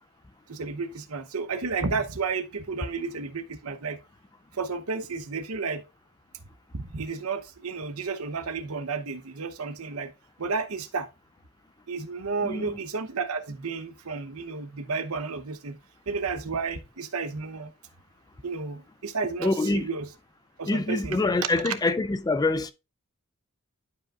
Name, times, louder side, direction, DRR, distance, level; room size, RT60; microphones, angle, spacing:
voice 1, 0.5-4.0 4.6-5.8 6.7-10.1 10.4-11.1 11.9-15.8 16.1-17.7 18.4-20.1 20.6-21.2 21.6-21.7, right 4 dB, 80° right, 0.9 m, -32 dB
voice 2, 19.4-19.9 20.7-22.7, left 2 dB, 15° left, 0.4 m, -25 dB
11.5 x 5.1 x 2.4 m
head